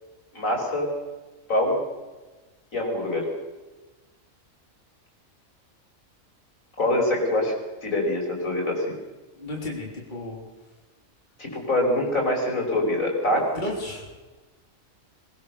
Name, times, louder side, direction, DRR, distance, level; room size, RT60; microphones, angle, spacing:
voice 1, 0.3-0.9 1.5-1.8 2.7-3.3 6.8-7.5 7.8-8.9 11.4-13.4, left 1 dB, 75° left, 0 dB, 6.3 m, -24 dB
voice 2, 9.4-10.5 13.4-14.2, left 1 dB, 35° left, -1 dB, 3.6 m, -34 dB
22.0 x 22.0 x 6.6 m, 1.2 s
omnidirectional pair, 1.4 m